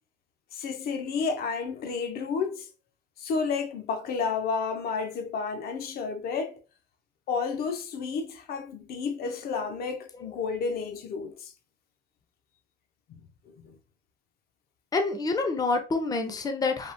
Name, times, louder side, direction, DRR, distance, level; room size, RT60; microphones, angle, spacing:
voice 1, 0.5-2.7 3.2-6.6 7.3-11.5 13.6-13.8, left 5 dB, 65° left, 0.6 m, -31 dB
voice 2, 14.9-16.9, left 3 dB, 20° left, 0.5 m, -27 dB
3.5 x 2.3 x 2.5 m
cardioid pair, 110°, 17 cm